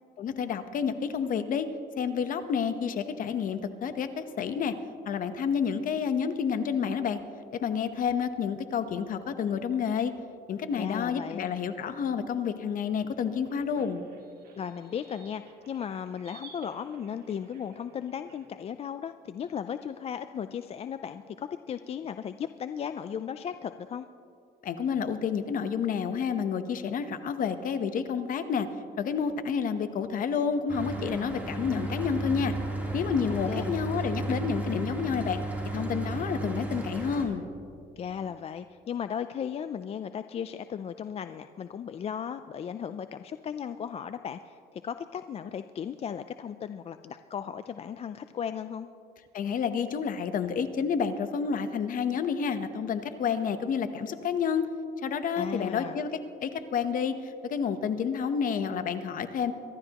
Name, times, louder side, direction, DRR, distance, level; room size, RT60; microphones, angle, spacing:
voice 1, 0.2-1.7 2.0-4.7 5.1-7.2 7.5-10.1 10.5-14.1 24.6-28.7 29.0-32.5 32.9-35.4 35.7-37.5 49.3-54.7 55.0-56.1 56.4-59.5, left 6 dB, 55° left, 10 dB, 1.0 m, -29 dB
voice 2, 10.7-11.5 14.6-24.1 33.3-33.8 38.0-48.9 55.4-56.0, left 8 dB, 35° left, 10 dB, 0.4 m, -36 dB
sound 1, 13.0-18.5, right 4 dB, 65° right, 2.0 m, -54 dB
Mechanical fan, 30.7-37.3, right 2 dB, 10° right, 3.3 m, -34 dB
24.5 x 12.5 x 3.0 m, 2.6 s
cardioid pair, 110°, 17 cm